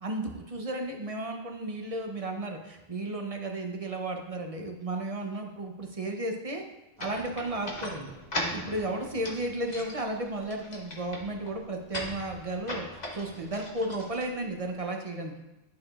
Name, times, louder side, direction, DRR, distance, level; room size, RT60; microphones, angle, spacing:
voice 1, 0.0-6.6 7.0-8.1 8.5-12.8 13.1-15.3, right 1 dB, 35° right, 2 dB, 0.6 m, -34 dB
sound 1, 7.0-14.8, left 1 dB, 35° left, 1.1 m, -39 dB
11.5 x 4.8 x 2.4 m, 0.99 s
omnidirectional pair, 1.3 m